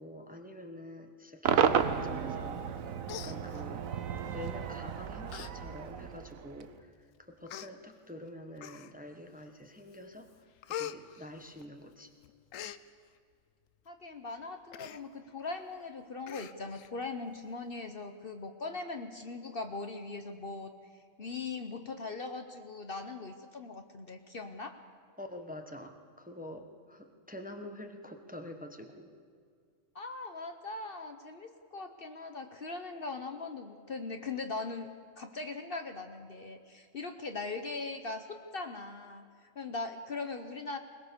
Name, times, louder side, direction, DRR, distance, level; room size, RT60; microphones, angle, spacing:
voice 1, 0.0-3.9 4.3-10.3 10.6-12.1 25.2-29.1, left 1 dB, 5° right, 5 dB, 1.2 m, -47 dB
Cheering / Crowd / Fireworks, 1.4-6.7, right 8 dB, 85° right, 1.3 m, -32 dB
Human voice, 2.6-2.8 3.1-4.0 4.7-4.9 5.3-5.5 5.9-6.0 6.8-6.9 7.5-7.7 8.6-9.1 9.6-10.0 10.3-12.0 12.2-12.8 14.7-15.0 15.4-15.5 15.8-15.9 16.3-16.9 17.3-17.4, left 10 dB, 75° left, 1.1 m, -43 dB
voice 2, 13.9-20.7 21.2-24.8 29.9-34.9 35.2-39.2 39.5-40.8, left 3 dB, 45° left, 7 dB, 1.1 m, -40 dB
21.0 x 20.5 x 6.8 m, 2.2 s
omnidirectional pair, 1.4 m